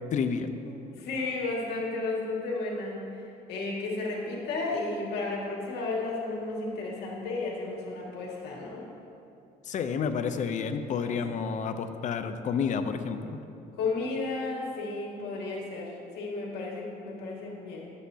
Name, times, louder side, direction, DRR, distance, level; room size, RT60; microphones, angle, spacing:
voice 1, 0.1-0.5 9.7-13.4, left 6 dB, 45° left, 9 dB, 0.5 m, -30 dB
voice 2, 0.6-8.8 11.0-11.2 13.8-17.9, left 3 dB, 75° left, -3 dB, 1.9 m, -33 dB
11.0 x 8.2 x 2.8 m, 2.7 s
cardioid pair, 110°, 17 cm